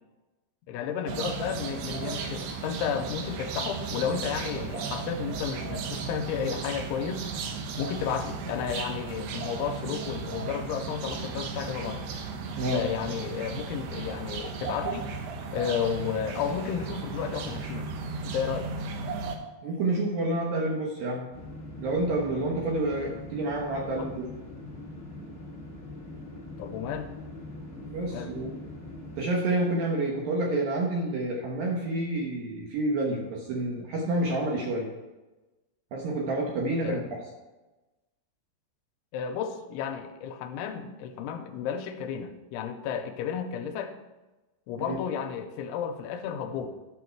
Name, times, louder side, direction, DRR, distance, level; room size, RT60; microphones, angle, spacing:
voice 1, 0.7-7.3 7.8-12.0 12.7-15.0 15.5-17.9 18.2-18.7 24.0-24.1 26.6-27.1 28.1-28.3 36.8-37.0 39.1-43.9 44.7-46.7, left 7 dB, 85° left, 6 dB, 3.1 m, -32 dB
sound 1, 1.1-19.4, right 5 dB, 85° right, 2.0 m, -35 dB
voice 2, 12.6-12.9 19.6-21.3 21.8-24.3 27.9-28.5 29.2-34.9 35.9-37.0 44.8-45.0, right 2 dB, 65° right, -1 dB, 2.4 m, -28 dB
sound 2, 21.3-29.2, left 1 dB, 20° left, 1.6 m, -42 dB
11.5 x 6.3 x 4.6 m, 1.1 s
omnidirectional pair, 5.4 m